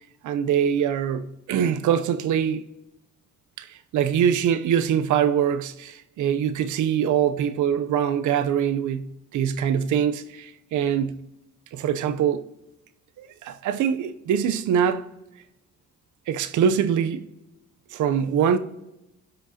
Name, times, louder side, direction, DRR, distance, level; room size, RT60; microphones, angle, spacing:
voice 1, 0.2-2.6 3.6-11.2 11.7-12.4 13.2-15.1 16.3-17.3 17.9-18.6, right 8 dB, 75° right, 0.7 m, -23 dB
17.5 x 6.0 x 2.8 m
cardioid pair, 90°, 30 cm